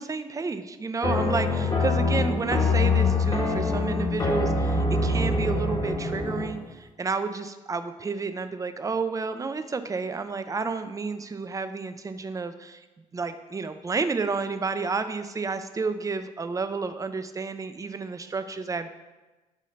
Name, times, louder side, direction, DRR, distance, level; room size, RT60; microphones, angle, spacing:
voice 1, 0.0-12.8 13.1-18.9, right 4 dB, 15° right, 10 dB, 0.5 m, -31 dB
sound 1, 1.0-6.6, left 3 dB, 25° left, 1.3 m, -24 dB
6.5 x 2.8 x 5.4 m, 1.2 s
hypercardioid pair, 50°, 19 cm